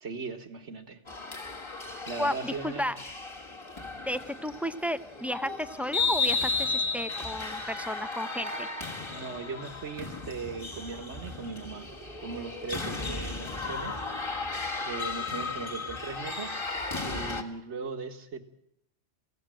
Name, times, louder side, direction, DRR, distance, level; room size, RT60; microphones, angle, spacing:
voice 1, 0.0-1.0 2.1-2.9 9.1-11.9 12.2-14.0 14.8-16.6 17.0-18.4, right 4 dB, 70° right, 7 dB, 1.9 m, -38 dB
sound 1, 1.1-17.4, left 4 dB, 25° left, 1.8 m, -34 dB
voice 2, 2.2-3.0 4.0-8.7, left 1 dB, ahead, 11 dB, 0.7 m, -33 dB
27.5 x 17.0 x 7.7 m, 0.77 s
omnidirectional pair, 1.2 m